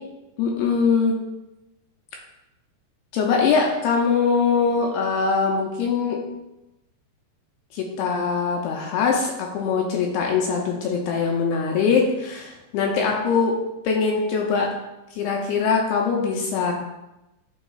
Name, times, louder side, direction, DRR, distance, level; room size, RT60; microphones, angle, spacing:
voice 1, 0.4-1.2 3.1-6.2 7.7-13.5 13.8-14.7 15.2-16.7, left 5 dB, 85° left, 0 dB, 2.4 m, -22 dB
11.5 x 4.0 x 2.4 m, 0.95 s
omnidirectional pair, 4.9 m